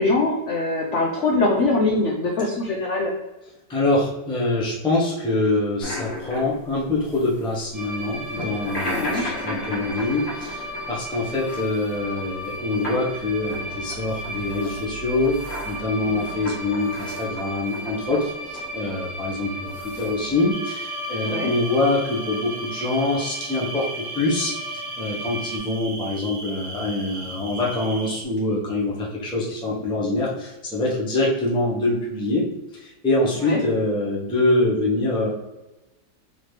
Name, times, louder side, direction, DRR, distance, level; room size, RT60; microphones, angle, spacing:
voice 1, 0.0-3.1 8.9-9.2 16.0-16.2 21.2-21.5 33.4-33.6, left 2 dB, 80° left, 0 dB, 0.6 m, -23 dB
voice 2, 3.7-15.4 15.6-35.3, left 2 dB, 5° left, -4 dB, 0.3 m, -25 dB
sound 1, 5.8-20.4, left 1 dB, 45° left, 1.7 m, -36 dB
sound 2, 7.7-25.6, equal, 30° right, 1.0 m, -35 dB
sound 3, 20.5-28.2, right 3 dB, 80° right, 1.4 m, -37 dB
4.0 x 3.1 x 3.2 m, 1.0 s
omnidirectional pair, 2.0 m